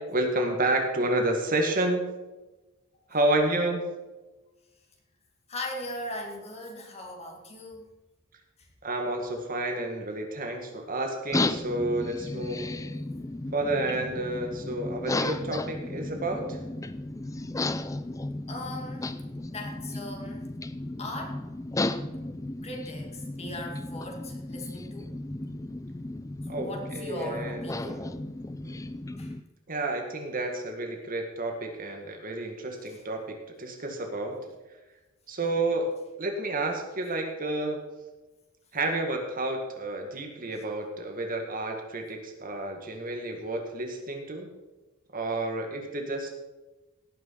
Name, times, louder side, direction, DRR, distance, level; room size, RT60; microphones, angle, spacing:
voice 1, 0.0-2.0 3.1-3.8 8.8-12.7 13.5-16.6 26.5-28.1 28.6-28.8 29.7-34.4 35.3-35.9 36.2-37.8 38.7-44.5 45.1-46.3, right 2 dB, 40° right, 3 dB, 1.9 m, -30 dB
voice 2, 5.5-7.9 8.6-8.7 18.5-19.1 19.5-20.4 21.0-21.4 22.6-25.1 26.6-28.0 29.2-29.3 32.9-33.0, left 1 dB, 30° left, 1 dB, 2.1 m, -39 dB
sound 1, 11.3-29.4, left 2 dB, 15° left, 0.5 m, -34 dB
18.0 x 6.4 x 5.7 m, 1.1 s
head